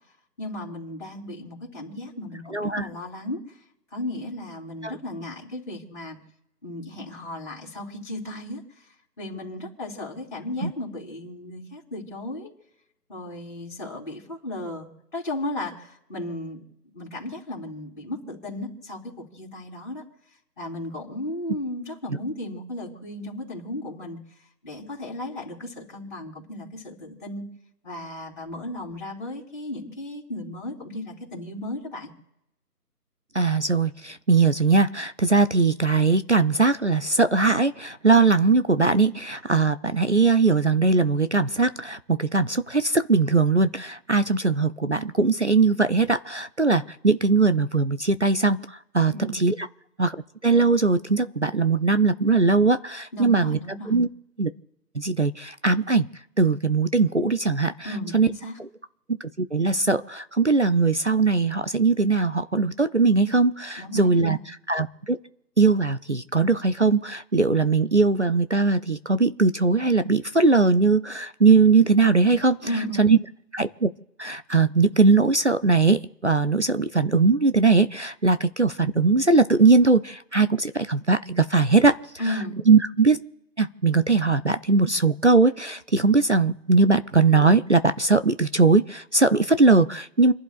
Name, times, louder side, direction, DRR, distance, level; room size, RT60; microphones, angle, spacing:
voice 1, 0.4-3.4 3.9-6.2 6.6-8.6 9.2-12.5 13.1-16.6 16.9-20.0 20.6-24.2 24.6-27.4 27.8-32.1 49.1-49.5 53.1-54.0 57.8-58.6 63.8-64.5 72.6-73.1 82.2-82.6, left 1 dB, 30° left, -4 dB, 3.5 m, -35 dB
voice 2, 2.5-2.8 4.8-4.9 10.6-10.7 33.3-48.6 48.9-49.5 50.0-50.2 50.4-53.6 53.9-54.1 54.4-54.5 55.0-56.1 56.4-57.7 58.1-58.3 59.5-65.2 65.6-72.6 73.0-73.2 73.5-73.9 74.2-82.0 82.7-83.2 83.6-90.3, right 4 dB, 45° right, 12 dB, 0.5 m, -20 dB
29.5 x 11.5 x 2.5 m, 0.88 s
figure-of-eight pair, 155°, 48 cm